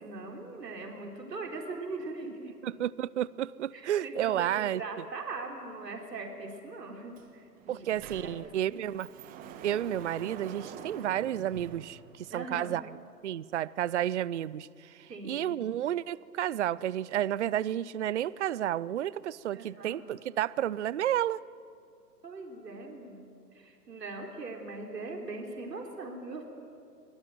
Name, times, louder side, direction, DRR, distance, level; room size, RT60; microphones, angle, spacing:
voice 1, 0.0-2.5 3.7-7.9 8.2-8.3 8.6-9.0 12.3-12.8 15.1-15.5 19.5-20.0 22.2-23.3 23.5-26.5, right 3 dB, 75° right, 1 dB, 4.2 m, -41 dB
voice 2, 2.6-4.8 7.7-9.1 9.6-13.0 13.2-21.4, right 11 dB, 45° right, 21 dB, 0.5 m, -31 dB
Sliding door, 7.2-7.3 7.6-12.6, right 7 dB, 15° right, 1.3 m, -46 dB
24.0 x 18.5 x 9.2 m, 2.3 s
figure-of-eight pair, 135°, 50 cm